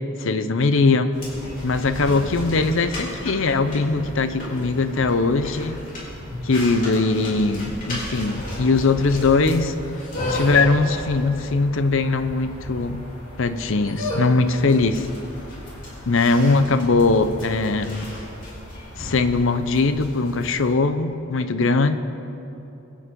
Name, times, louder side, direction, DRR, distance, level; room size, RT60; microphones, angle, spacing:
voice 1, 0.2-1.1 1.6-5.8 6.4-9.7 10.3-13.0 13.4-15.1 16.1-18.1 19.0-21.9, left 3 dB, 65° left, 10 dB, 0.7 m, -20 dB
sound 1, 1.1-20.7, left 1 dB, 40° left, 3.4 m, -34 dB
23.5 x 8.5 x 3.8 m, 2.9 s
head